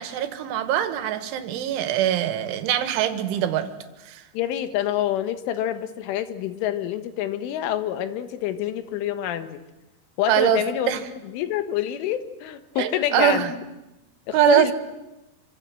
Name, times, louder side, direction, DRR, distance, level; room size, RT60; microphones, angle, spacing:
voice 1, 0.0-3.7 4.1-4.2 10.3-11.0 12.8-13.5 14.3-14.7, right 11 dB, 80° right, 10 dB, 3.8 m, -23 dB
voice 2, 4.3-9.6 10.2-10.9 11.3-13.5 14.3-14.7, left 11 dB, 85° left, 11 dB, 3.8 m, -27 dB
27.0 x 25.0 x 7.7 m, 0.98 s
omnidirectional pair, 5.5 m